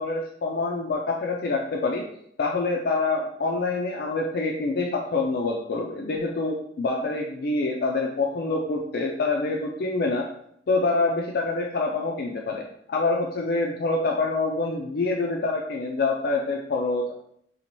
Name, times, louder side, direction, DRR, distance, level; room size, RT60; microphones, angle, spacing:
voice 1, 0.0-2.0 2.4-10.3 10.7-12.6 12.9-17.2, left 3 dB, 60° left, 0 dB, 0.4 m, -26 dB
3.0 x 2.8 x 4.3 m, 0.71 s
head